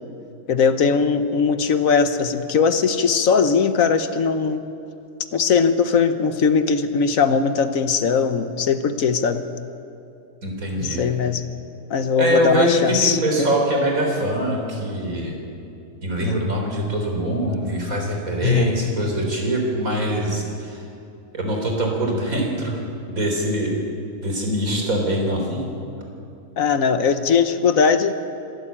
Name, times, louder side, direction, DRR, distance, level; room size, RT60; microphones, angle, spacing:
voice 1, 0.5-4.6 5.3-9.4 10.8-11.4 11.9-13.5 16.2-16.4 18.4-18.8 26.6-28.1, left 5 dB, 65° left, 10 dB, 1.4 m, -20 dB
voice 2, 10.4-11.0 12.2-15.3 16.0-20.8 21.3-23.8 24.2-25.6, right 1 dB, 70° right, 1 dB, 4.2 m, -23 dB
25.5 x 13.0 x 8.8 m, 2.6 s
omnidirectional pair, 1.5 m